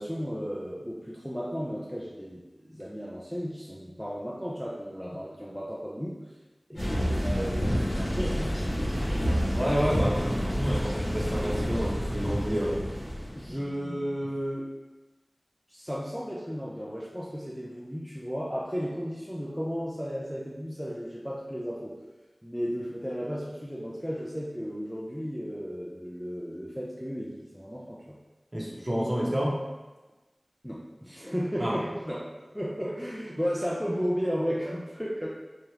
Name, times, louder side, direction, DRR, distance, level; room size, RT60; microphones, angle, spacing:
voice 1, 0.0-2.4 2.7-6.2 6.7-8.6 13.4-14.7 15.7-22.0 22.4-28.2 30.6-35.3, equal, ahead, -5 dB, 0.5 m, -34 dB
sound 1, 6.8-13.5, equal, 75° left, 1.5 m, -29 dB
voice 2, 9.5-12.8 13.4-14.1 28.5-29.6 31.6-31.8, equal, 25° right, -4 dB, 0.9 m, -29 dB
4.4 x 2.4 x 3.2 m, 1.2 s
wide cardioid pair, 55°, 0 cm